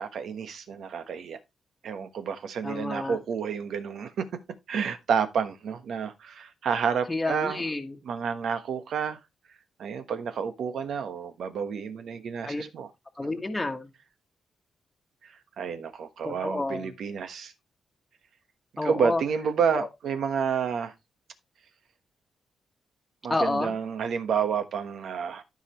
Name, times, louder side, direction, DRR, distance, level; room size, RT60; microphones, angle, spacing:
voice 1, 0.0-1.4 1.8-4.4 4.7-7.6 8.0-9.2 9.8-12.9 15.6-17.5 18.8-20.9 23.2-25.4, right 6 dB, 70° right, 1.2 m, -30 dB
voice 2, 2.6-3.2 7.1-8.0 12.5-12.6 13.2-13.9 16.2-16.9 18.8-19.2 19.7-19.9 23.3-23.8, left 2 dB, 15° left, 1.3 m, -29 dB
13.5 x 5.0 x 3.0 m
wide cardioid pair, 135°, 0 cm